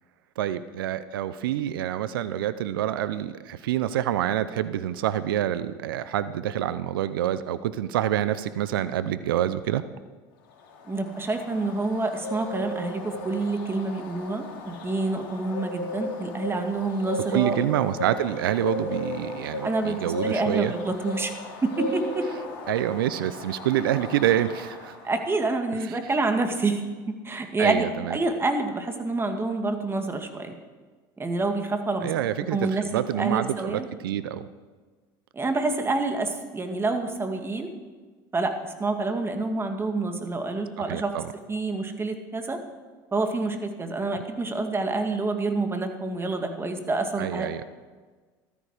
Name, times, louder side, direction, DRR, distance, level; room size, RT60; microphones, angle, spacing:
voice 1, 0.4-9.8 17.3-20.7 22.7-25.0 27.6-28.2 32.0-34.5 40.8-41.3 47.2-47.6, right 11 dB, 85° right, 14 dB, 0.6 m, -27 dB
Bird, 10.6-25.3, left 1 dB, 80° left, 3.0 m, -36 dB
voice 2, 10.9-17.6 19.6-21.3 21.6-22.3 25.0-26.8 27.2-30.6 31.2-32.1 32.5-33.9 35.3-37.7 38.3-38.5 38.8-41.1 41.5-42.6 43.1-47.5, right 3 dB, 20° right, 5 dB, 2.2 m, -27 dB
14.0 x 13.5 x 5.0 m, 1.4 s
hypercardioid pair, 85°, 11 cm